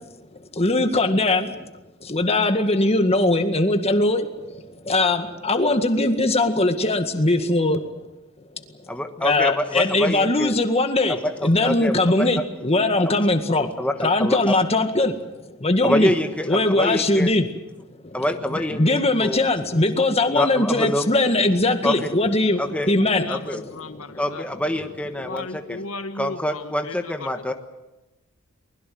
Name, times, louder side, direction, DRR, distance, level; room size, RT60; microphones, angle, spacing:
voice 1, 0.5-1.7 2.0-8.0 9.2-13.7 14.0-15.2 15.5-16.1 16.5-17.5 18.0-24.2 25.3-25.4, left 2 dB, 30° left, 7 dB, 1.9 m, -21 dB
voice 2, 8.9-10.5 11.1-12.3 13.6-14.6 15.8-17.3 18.1-19.4 20.3-21.1 21.8-22.1 22.6-22.9 23.3-23.6 24.2-25.8 26.1-27.5, left 1 dB, 5° left, 5 dB, 1.3 m, -26 dB
voice 3, 23.8-24.4 25.3-26.6, left 3 dB, 80° left, 9 dB, 1.5 m, -34 dB
23.0 x 21.0 x 7.8 m, 1.0 s
head